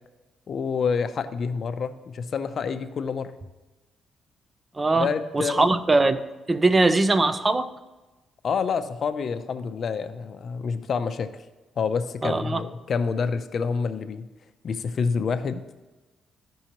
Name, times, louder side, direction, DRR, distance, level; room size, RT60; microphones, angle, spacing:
voice 1, 0.5-3.3 4.9-5.7 8.4-11.4 11.8-14.3 14.6-15.6, left 5 dB, 55° left, 10 dB, 0.6 m, -28 dB
voice 2, 4.8-6.2 6.5-7.7 12.2-12.7, right 2 dB, 25° right, 12 dB, 0.6 m, -21 dB
14.5 x 5.4 x 3.0 m, 1.1 s
cardioid pair, 90°, 0 cm